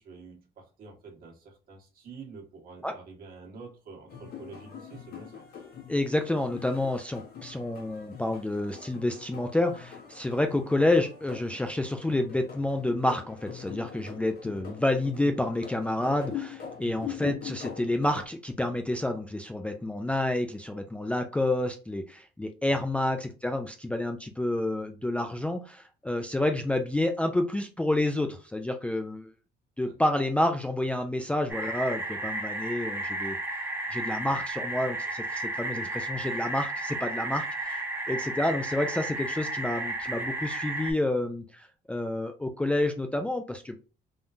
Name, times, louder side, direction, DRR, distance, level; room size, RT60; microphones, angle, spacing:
voice 1, 0.0-5.4 17.0-17.2 22.7-22.9 29.9-30.0 34.2-34.4, right 4 dB, 60° right, 0 dB, 1.4 m, -47 dB
sound 1, 4.1-18.2, left 8 dB, 65° left, 1.2 m, -43 dB
voice 2, 5.9-29.3 29.8-33.4 33.9-43.8, left 1 dB, 5° left, 5 dB, 0.3 m, -29 dB
sound 2, 31.5-40.9, right 2 dB, 15° right, 0.8 m, -33 dB
3.5 x 2.3 x 2.5 m, 0.34 s
cardioid pair, 110°, 17 cm